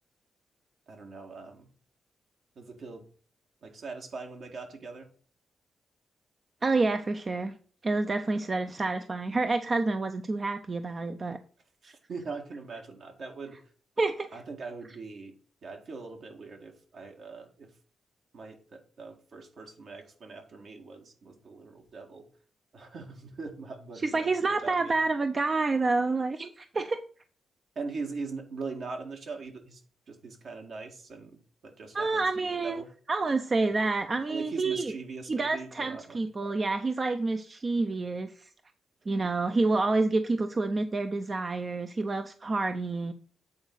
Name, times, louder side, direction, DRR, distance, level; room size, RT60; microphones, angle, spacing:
voice 1, 0.9-1.7 2.6-3.1 3.6-5.1 8.0-8.1 11.8-13.6 14.3-17.8 18.3-22.3 22.7-24.9 27.8-29.8 30.1-32.9 34.3-36.2, right 4 dB, 65° right, 2 dB, 1.9 m, -41 dB
voice 2, 6.6-7.5 7.8-11.4 11.8-11.9 14.0-14.3 24.0-27.0 31.9-32.8 33.1-34.9 35.3-38.5 39.1-43.1, right 3 dB, 40° right, 8 dB, 0.7 m, -28 dB
8.6 x 4.0 x 6.4 m, 0.42 s
cardioid pair, 65°, 0 cm